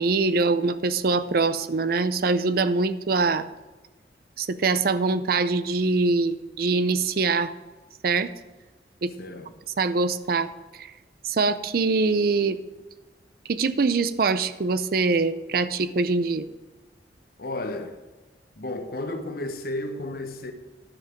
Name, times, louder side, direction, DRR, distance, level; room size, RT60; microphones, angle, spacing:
voice 1, 0.0-3.5 4.4-7.5 8.0-8.3 9.0-9.1 9.8-10.5 10.8-10.9 11.2-12.6 13.5-16.5, right 4 dB, 55° right, 0.5 m, -23 dB
voice 2, 9.2-9.5 17.4-18.0 18.6-20.5, left 2 dB, 55° left, 1.0 m, -33 dB
10.5 x 7.2 x 4.5 m
head